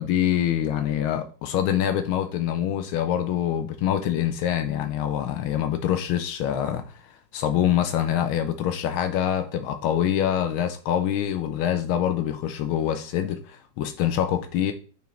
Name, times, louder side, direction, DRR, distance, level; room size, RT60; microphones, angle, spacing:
voice 1, 0.0-14.7, left 10 dB, 80° left, 1.5 m, -25 dB
9.3 x 5.1 x 3.1 m
omnidirectional pair, 2.2 m